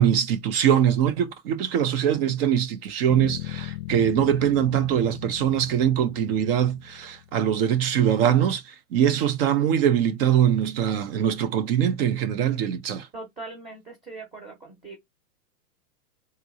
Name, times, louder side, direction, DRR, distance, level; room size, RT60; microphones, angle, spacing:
voice 1, 0.0-13.1, right 9 dB, 40° right, 0.6 m, -22 dB
Bass guitar, 3.1-7.5, left 14 dB, 65° left, 0.5 m, -38 dB
voice 2, 13.1-15.0, right 3 dB, 15° right, 1.1 m, -40 dB
3.7 x 2.6 x 2.6 m
hypercardioid pair, 145°, 46 cm